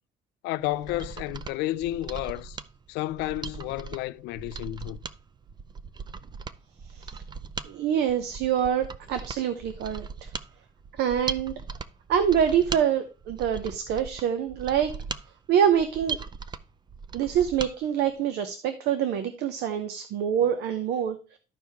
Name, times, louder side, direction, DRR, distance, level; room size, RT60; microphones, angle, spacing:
voice 1, 0.4-2.6 2.9-5.0, left 16 dB, 90° left, 0.4 m, -31 dB
Mechanisms, 0.7-17.7 18.1-18.2, right 5 dB, 25° right, 0.5 m, -39 dB
voice 2, 6.9-7.2 7.6-10.3 11.0-11.5 12.1-14.9 15.5-16.2 17.1-21.4, right 9 dB, 80° right, 0.8 m, -25 dB
12.5 x 4.7 x 3.4 m
cardioid pair, 110°, 17 cm